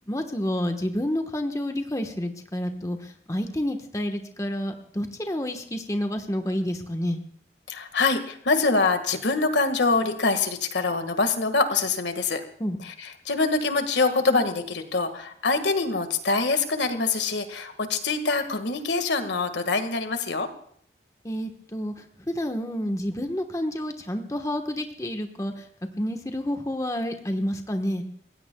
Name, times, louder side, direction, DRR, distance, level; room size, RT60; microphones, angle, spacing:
voice 1, 0.1-7.2 12.6-12.8 21.2-25.7 26.0-28.0, left 1 dB, 20° left, 5 dB, 1.2 m, -29 dB
voice 2, 7.7-12.4 12.8-20.5, left 3 dB, 90° left, 8 dB, 1.7 m, -25 dB
29.5 x 16.0 x 2.3 m, 0.66 s
head